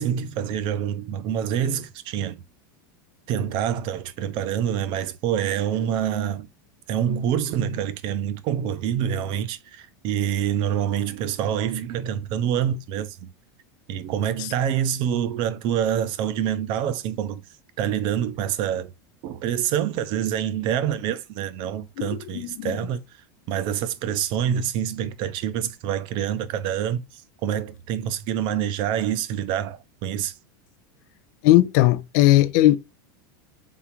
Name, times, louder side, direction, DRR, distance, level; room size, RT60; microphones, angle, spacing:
voice 1, 0.0-2.4 3.3-6.5 6.9-13.3 13.9-17.4 17.8-18.9 19.2-23.0 23.5-30.4, right 9 dB, 45° right, 0.5 m, -26 dB
voice 2, 22.0-22.8 31.4-32.8, left 15 dB, 60° left, 0.4 m, -18 dB
3.7 x 3.6 x 2.9 m
supercardioid pair, 135°, 11 cm